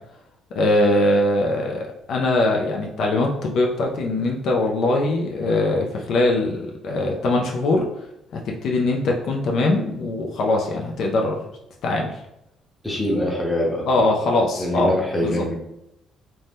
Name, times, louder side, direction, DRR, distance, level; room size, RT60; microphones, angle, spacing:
voice 1, 0.6-7.8 8.3-11.4 11.8-12.2 13.9-14.9 15.2-15.4, left 2 dB, 70° left, 0 dB, 0.4 m, -21 dB
voice 2, 12.8-13.9 14.6-15.6, left 1 dB, 10° left, -2 dB, 0.8 m, -23 dB
2.6 x 2.1 x 3.3 m, 0.84 s
cardioid pair, 90°, 0 cm